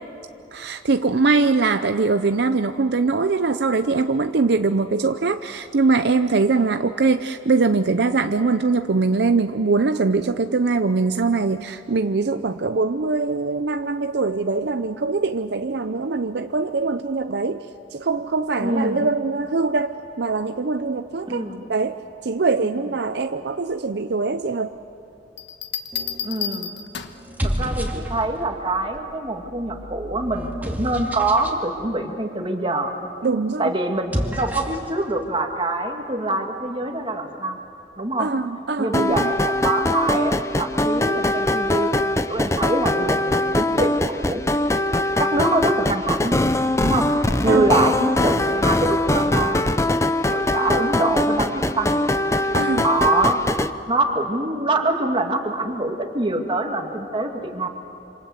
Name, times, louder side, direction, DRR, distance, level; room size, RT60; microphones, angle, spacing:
voice 1, 0.5-17.7 17.9-21.4 21.7-24.7 33.2-33.7 38.2-39.3 47.4-47.7 52.5-52.9, right 4 dB, 70° right, 9 dB, 0.6 m, -22 dB
voice 2, 18.6-19.1 21.3-21.6 22.6-22.7 26.2-26.7 27.4-32.9 33.6-37.6 38.0-38.3 38.8-41.9 42.2-44.4 45.2-46.4 46.8-47.1 47.4-49.8 50.3-51.5 51.8-52.0 52.8-53.4 53.9-57.7, right 2 dB, 30° right, 3 dB, 2.2 m, -24 dB
Bell, 25.4-27.3 28.9-29.3, left 8 dB, 80° left, 1.3 m, -31 dB
sound 1, 25.9-26.3 27.2-28.5 29.3-31.6 33.9-34.9, equal, 10° right, 2.4 m, -30 dB
sound 2, 38.9-53.7, left 1 dB, 15° left, 0.7 m, -22 dB
27.5 x 26.5 x 8.0 m, 2.7 s
head